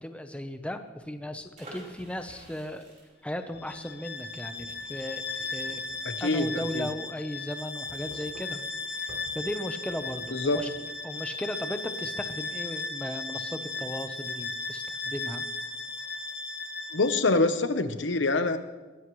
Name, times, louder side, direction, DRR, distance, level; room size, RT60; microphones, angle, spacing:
voice 1, 0.0-2.8 3.2-5.8 6.2-8.6 9.0-10.7 11.0-15.4, left 1 dB, 5° left, 7 dB, 0.9 m, -36 dB
sound 1, 1.2-2.6 3.5-3.7 4.6-6.6 6.8-7.0 7.9-8.8 9.1-9.3 9.9-10.7, equal, 85° right, 3.6 m, -52 dB
sound 2, 1.5-7.2 7.5-7.6 7.8-8.1, right 1 dB, 40° right, 5.5 m, -51 dB
Bowed string instrument, 3.6-17.4, left 3 dB, 60° left, 1.0 m, -36 dB
voice 2, 6.0-6.9 10.3-10.6 16.9-18.6, left 2 dB, 85° left, 10 dB, 1.0 m, -25 dB
21.0 x 16.0 x 3.2 m, 1.2 s
head